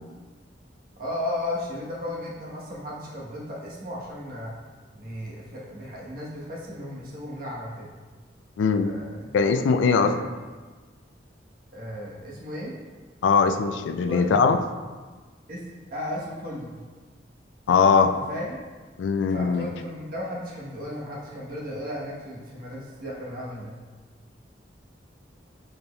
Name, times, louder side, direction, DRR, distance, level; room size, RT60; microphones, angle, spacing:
voice 1, 1.0-4.5 4.9-7.9 8.8-9.3 9.8-10.2 11.7-12.7 14.1-14.5 15.5-16.8 18.3-18.6 19.3-23.8, left 1 dB, 50° right, -5 dB, 1.1 m, -35 dB
voice 2, 8.6-8.9 9.3-10.1 13.2-14.6 17.7-18.1 19.0-19.7, left 5 dB, 90° left, 8 dB, 0.3 m, -20 dB
5.0 x 4.2 x 2.3 m, 1.4 s
head